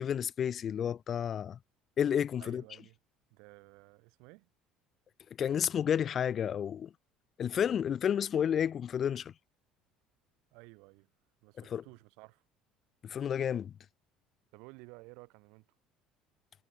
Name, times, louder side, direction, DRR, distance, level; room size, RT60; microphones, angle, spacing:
voice 1, 0.0-1.6 2.0-2.6 5.4-6.9 7.4-9.3 11.7-11.8 13.0-13.7, left 8 dB, 45° left, 0.3 m, -31 dB
voice 2, 2.4-3.0 3.3-4.5 10.5-11.1 11.4-12.4 14.5-15.8, right 29 dB, 70° right, 2.1 m, -54 dB
hypercardioid pair, 65°, 0 cm